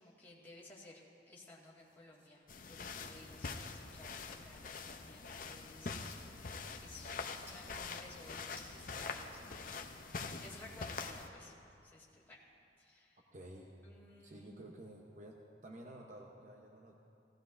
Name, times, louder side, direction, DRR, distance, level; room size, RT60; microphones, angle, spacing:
voice 1, 0.0-6.1 6.7-11.5 11.8-12.4 12.8-13.3 13.8-14.5, left 2 dB, 10° left, -7 dB, 1.8 m, -57 dB
sound 1, 1.4-3.7 4.2-5.1 6.1-7.1 7.5-8.0 8.4-9.0, left 1 dB, 15° right, 1.9 m, -63 dB
sound 2, 2.5-11.3, left 4 dB, 45° left, 0.6 m, -45 dB
voice 2, 13.3-13.7 14.2-17.0, right 1 dB, 40° right, 0 dB, 0.8 m, -52 dB
17.5 x 14.5 x 2.6 m, 2.6 s
head